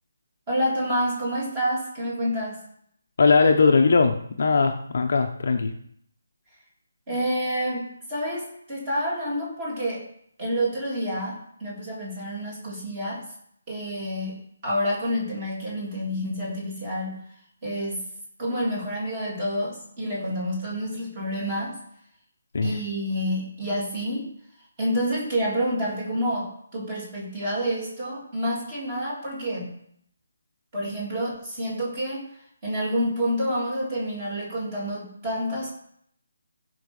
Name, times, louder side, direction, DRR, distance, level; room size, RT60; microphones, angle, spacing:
voice 1, 0.5-2.6 7.1-10.1 10.4-13.2 13.7-14.4 14.6-17.2 17.6-18.0 18.4-21.8 22.6-24.3 24.8-29.7 30.7-32.3 32.6-35.7, equal, 15° right, -5 dB, 3.2 m, -28 dB
voice 2, 3.2-5.7 22.5-22.8, left 4 dB, 40° left, 4 dB, 1.0 m, -20 dB
15.5 x 5.7 x 5.5 m, 0.69 s
hypercardioid pair, 180°, 0 cm